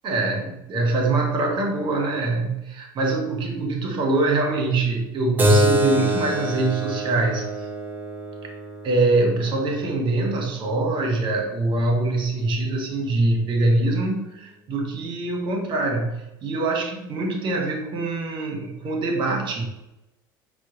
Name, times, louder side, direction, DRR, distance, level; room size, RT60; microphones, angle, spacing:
voice 1, 0.0-7.7 8.8-19.7, right 2 dB, 45° right, 2 dB, 0.9 m, -24 dB
Keyboard (musical), 5.4-10.5, equal, 15° right, 0.7 m, -25 dB
4.3 x 2.1 x 2.8 m, 0.93 s
hypercardioid pair, 80°, 11 cm